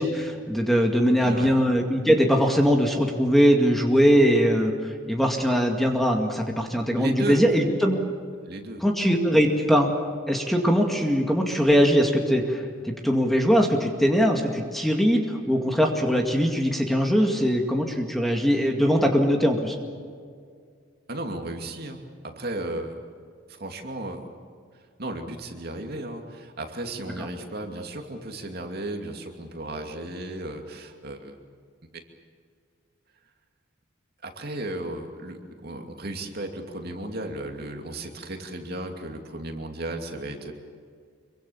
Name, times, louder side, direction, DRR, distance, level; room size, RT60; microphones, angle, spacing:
voice 1, 0.0-8.0 8.8-9.9 10.3-19.8 27.2-27.3, equal, ahead, 2 dB, 2.1 m, -21 dB
voice 2, 1.2-1.5 7.0-7.4 8.5-8.8 21.1-22.9 23.5-24.2 25.0-31.3 31.9-32.0 34.2-40.5, right 1 dB, 50° right, 3 dB, 2.6 m, -34 dB
26.0 x 24.0 x 7.2 m, 2.1 s
head